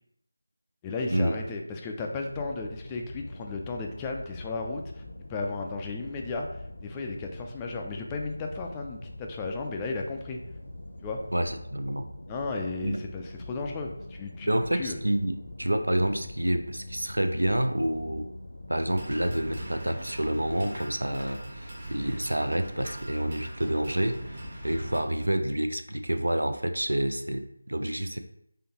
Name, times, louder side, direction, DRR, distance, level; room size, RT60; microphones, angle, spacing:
voice 1, 0.8-5.0 5.3-10.4 11.0-11.2 12.3-15.0, left 3 dB, 15° left, 2 dB, 0.3 m, -34 dB
sound 1, 2.2-19.7, left 1 dB, 65° left, 0.7 m, -44 dB
voice 2, 11.3-12.1 12.8-13.0 14.5-18.3 18.7-28.2, right 1 dB, 80° right, 7 dB, 0.5 m, -28 dB
sound 2, 18.9-25.0, right 1 dB, 45° right, 1.1 m, -40 dB
3.7 x 3.4 x 2.9 m, 0.74 s
figure-of-eight pair, 165°, 0 cm